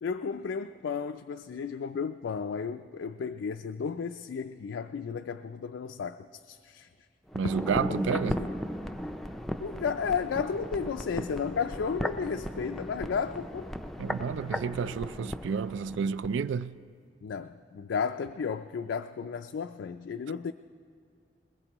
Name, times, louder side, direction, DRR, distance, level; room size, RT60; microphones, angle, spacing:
voice 1, 0.0-6.9 8.1-8.5 9.6-13.7 17.2-20.5, left 6 dB, 75° left, 0.3 m, -33 dB
sound 1, 7.3-16.4 16.6-16.7, equal, ahead, 0.4 m, -36 dB
voice 2, 7.3-8.4 14.0-16.7, right 6 dB, 80° right, 0.3 m, -30 dB
21.5 x 20.0 x 3.0 m
head